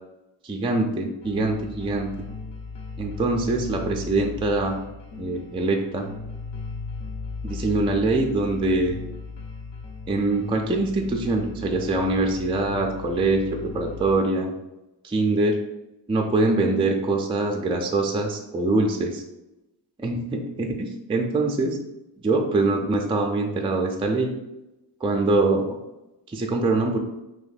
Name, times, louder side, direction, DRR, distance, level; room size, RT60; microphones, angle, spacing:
voice 1, 0.4-2.1 3.0-4.8 5.2-6.1 7.4-9.0 10.1-14.5 15.0-15.6 16.1-19.2 20.0-21.8 22.2-24.3 25.0-25.8 26.3-27.0, right 2 dB, 10° right, 2 dB, 0.4 m, -23 dB
sound 1, 1.2-14.2, left 4 dB, 60° left, 0.8 m, -37 dB
3.0 x 2.5 x 4.0 m, 0.95 s
cardioid pair, 80°, 49 cm